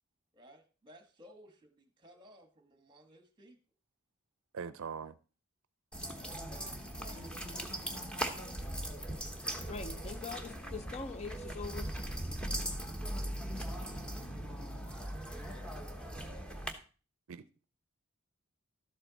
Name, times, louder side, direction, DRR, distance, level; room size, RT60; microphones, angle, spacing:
voice 1, 0.3-3.6 6.2-7.5 15.2-15.7, equal, 20° right, 1.5 m, -58 dB
voice 2, 4.5-5.2 17.3-17.6, right 6 dB, 65° right, 0.5 m, -42 dB
sound 1, 5.9-16.7, right 1 dB, 5° left, 1.1 m, -39 dB
voice 3, 9.4-12.0, left 4 dB, 30° left, 0.5 m, -43 dB
12.5 x 7.8 x 4.0 m
head